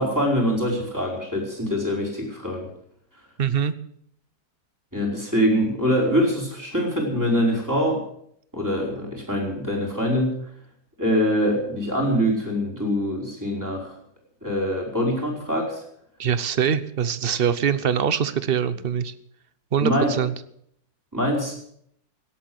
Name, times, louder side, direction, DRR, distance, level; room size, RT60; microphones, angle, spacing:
voice 1, 0.0-2.7 4.9-8.0 8.5-10.3 11.0-13.9 14.4-15.8 19.8-20.1 21.1-21.5, equal, 10° right, -1 dB, 4.9 m, -24 dB
voice 2, 3.4-3.7 16.2-19.1 19.7-20.3, right 8 dB, 55° right, 14 dB, 0.6 m, -23 dB
17.5 x 8.5 x 7.9 m, 0.68 s
omnidirectional pair, 2.0 m